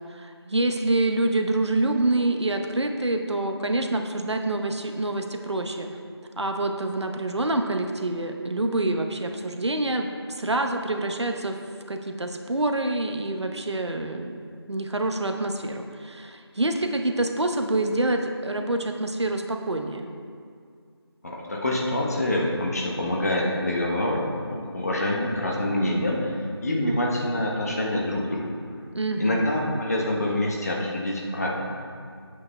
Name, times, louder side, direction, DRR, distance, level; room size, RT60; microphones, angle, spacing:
voice 1, 0.1-5.9 6.4-11.6 11.9-14.4 14.7-20.0 28.9-29.4, right 2 dB, 85° right, 4 dB, 1.0 m, -26 dB
voice 2, 21.2-28.6 29.2-31.6, left 1 dB, 35° left, -1 dB, 1.2 m, -26 dB
16.0 x 8.5 x 2.3 m, 2.2 s
figure-of-eight pair, 170°, 14 cm